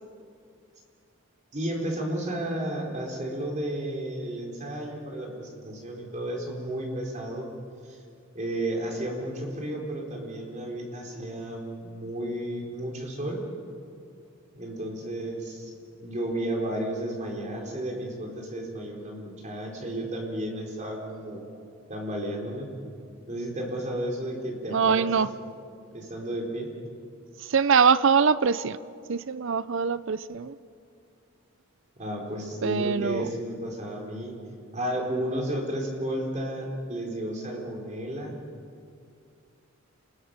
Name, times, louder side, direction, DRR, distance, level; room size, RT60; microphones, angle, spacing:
voice 1, 1.5-7.5 7.9-8.0 8.3-13.4 14.5-15.7 16.0-21.5 21.9-22.7 23.3-25.1 25.9-26.7 32.0-34.3 34.7-38.4, right 1 dB, 35° right, 0 dB, 4.3 m, -32 dB
voice 2, 24.7-25.3 27.4-28.8 29.1-30.6 32.6-33.3, right 6 dB, 60° right, 16 dB, 0.5 m, -23 dB
29.5 x 20.5 x 6.7 m, 2.4 s
head